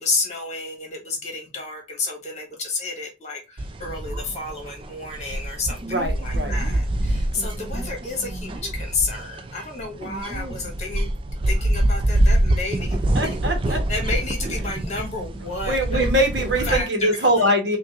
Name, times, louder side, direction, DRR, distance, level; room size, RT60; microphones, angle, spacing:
voice 1, 0.0-5.8 6.2-11.1 11.5-13.4 13.6-16.0 16.6-17.5, left 3 dB, 35° left, 1 dB, 1.5 m, -31 dB
sound 1, 3.6-16.8, right 1 dB, 25° right, 0.3 m, -25 dB
voice 2, 5.8-6.5 13.1-13.8 15.6-17.8, right 1 dB, 65° right, 4 dB, 1.1 m, -22 dB
5.3 x 2.5 x 2.5 m, 0.26 s
head